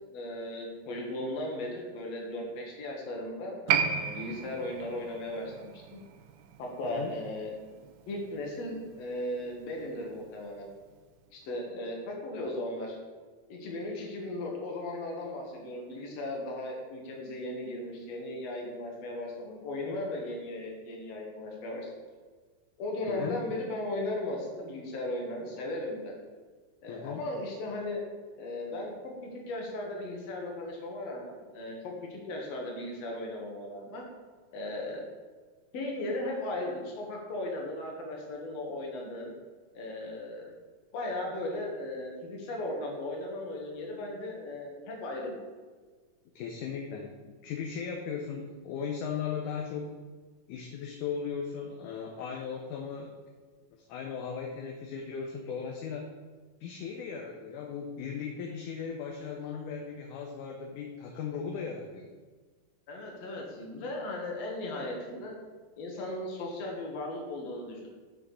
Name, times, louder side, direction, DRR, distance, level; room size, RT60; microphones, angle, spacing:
voice 1, 0.1-6.0 6.6-7.5 8.1-10.7 11.3-13.0 13.5-21.9 22.8-26.2 26.8-28.0 28.4-34.0 34.5-35.0 35.7-39.3 39.7-40.5 40.9-45.4 62.9-65.4 65.8-67.9, left 1 dB, 55° left, 0 dB, 2.4 m, -37 dB
Piano, 3.7-10.7 10.9-11.0, right 7 dB, 80° right, 2.0 m, -35 dB
voice 2, 23.1-23.4 26.9-27.2 46.4-49.9 50.5-53.1 53.9-56.0 56.6-62.1, left 6 dB, 75° left, 2 dB, 2.0 m, -37 dB
8.0 x 6.1 x 4.9 m, 1.5 s
omnidirectional pair, 3.8 m